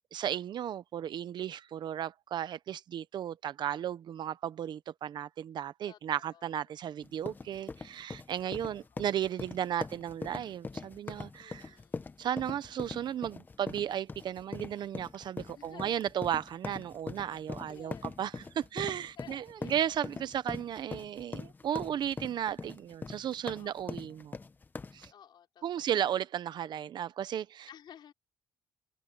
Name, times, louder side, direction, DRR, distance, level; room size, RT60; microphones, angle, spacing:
voice 1, 0.1-11.8 12.2-24.4 24.9-25.1 25.6-27.7, right 10 dB, 55° right, 0.9 m, -35 dB
voice 2, 5.9-6.8 8.4-8.8 11.4-12.2 15.5-16.1 17.7-18.2 19.2-19.8 23.6-24.0 25.1-25.9 27.7-28.1, left 9 dB, 55° left, 4.4 m, -55 dB
sound 1, 7.0-25.1, left 4 dB, 20° left, 1.0 m, -42 dB
cardioid pair, 120°, 9 cm